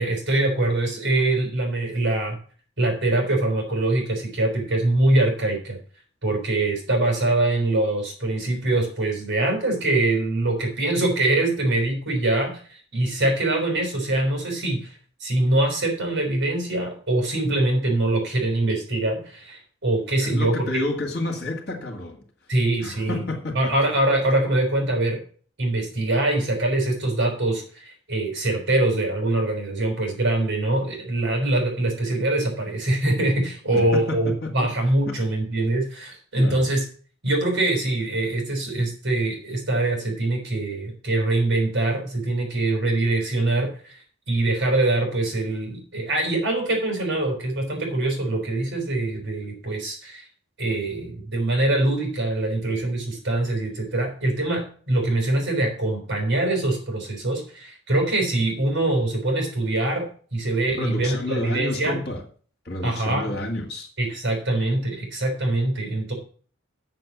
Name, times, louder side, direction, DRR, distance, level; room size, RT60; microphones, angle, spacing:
voice 1, 0.0-2.4 2.8-5.8 6.2-14.9 15.2-20.8 22.5-23.2 23.5-25.2 25.6-36.8 37.2-44.0 44.3-50.3 50.6-60.0 60.3-62.0 62.8-63.3 64.0-66.1, right 2 dB, 55° right, 2 dB, 5.1 m, -23 dB
voice 2, 20.2-22.2 22.8-23.6 33.7-34.7 35.1-35.2 36.4-36.7 60.7-62.2 62.7-63.9, left 2 dB, 50° left, 4 dB, 2.0 m, -30 dB
7.9 x 6.9 x 7.3 m, 0.43 s
head